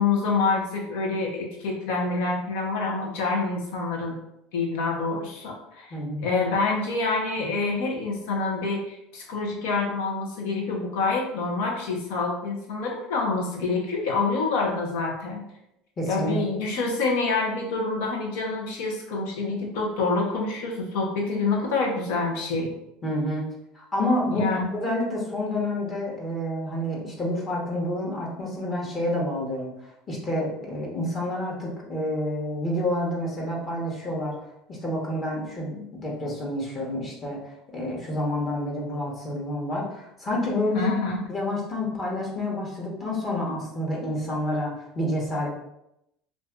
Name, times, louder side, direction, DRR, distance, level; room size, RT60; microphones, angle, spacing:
voice 1, 0.0-4.2 4.5-5.9 6.2-15.4 16.1-22.7 24.3-24.7 40.7-41.2, left 3 dB, 80° left, 0 dB, 0.9 m, -27 dB
voice 2, 5.9-6.3 16.0-16.4 23.0-23.4 23.7-24.5 24.8-34.3 34.7-37.4 37.7-40.9 41.3-45.5, left 1 dB, 30° left, -3 dB, 1.1 m, -28 dB
2.6 x 2.5 x 3.5 m, 0.83 s
supercardioid pair, 100°, 0 cm